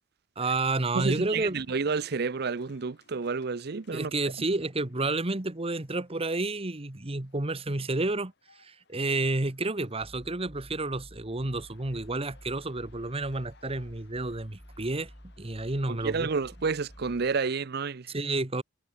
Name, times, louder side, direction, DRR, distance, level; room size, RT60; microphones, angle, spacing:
voice 1, 0.4-1.6 3.9-8.3 8.6-15.1 15.4-16.3 18.1-18.6, right 2 dB, 30° right, 1.4 m, -30 dB
voice 2, 0.9-4.1 15.9-18.1, right 4 dB, 55° right, 0.6 m, -30 dB
sound 1, 1.2-17.5, left 3 dB, 65° left, 7.3 m, -63 dB
sound 2, 10.0-17.4, equal, 10° left, 5.5 m, -51 dB
head